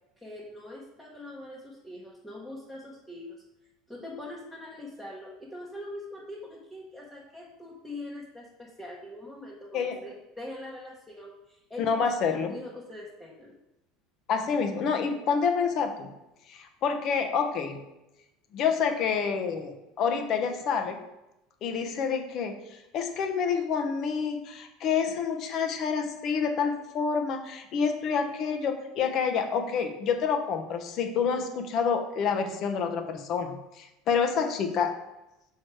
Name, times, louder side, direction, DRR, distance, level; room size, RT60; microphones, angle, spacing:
voice 1, 0.2-3.4 3.9-13.5, left 1 dB, 5° left, -5 dB, 1.1 m, -43 dB
voice 2, 11.8-12.5 14.3-16.1 16.5-17.8 18.5-21.0 21.6-34.9, left 6 dB, 45° left, 5 dB, 1.0 m, -28 dB
6.3 x 4.7 x 4.6 m, 0.93 s
cardioid pair, 150°, 0 cm